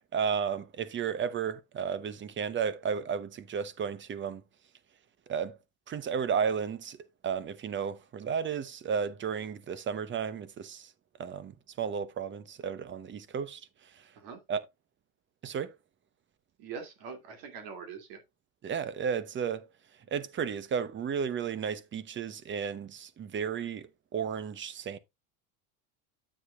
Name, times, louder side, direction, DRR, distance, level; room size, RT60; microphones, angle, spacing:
voice 1, 0.0-4.4 5.3-5.6 5.9-7.0 7.2-10.9 11.2-14.1 14.5-14.6 15.4-15.8 18.6-19.7 20.1-25.0, right 7 dB, 25° right, 0.8 m, -33 dB
voice 2, 16.6-18.2, right 6 dB, 60° right, 2.5 m, -43 dB
9.6 x 7.5 x 2.3 m
supercardioid pair, 130°, 42 cm